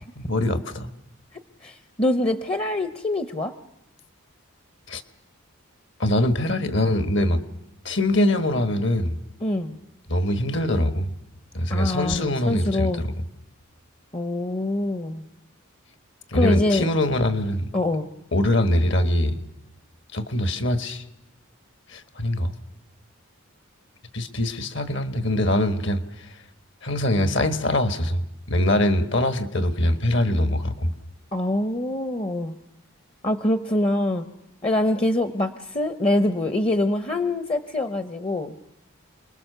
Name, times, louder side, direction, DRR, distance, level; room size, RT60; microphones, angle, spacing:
voice 1, 0.1-0.9 4.9-5.0 6.0-7.4 7.8-9.2 10.1-11.1 11.5-13.1 16.3-17.7 18.3-19.4 20.1-21.0 21.9-22.6 24.1-26.3 26.8-30.9, left 1 dB, 55° left, 9 dB, 1.5 m, -23 dB
voice 2, 1.6-3.5 9.4-9.8 11.7-13.0 14.1-15.2 16.3-16.9 17.7-18.1 31.3-32.5 33.2-34.2 34.6-38.5, left 1 dB, 25° left, 9 dB, 0.8 m, -24 dB
29.0 x 21.0 x 6.8 m, 0.86 s
head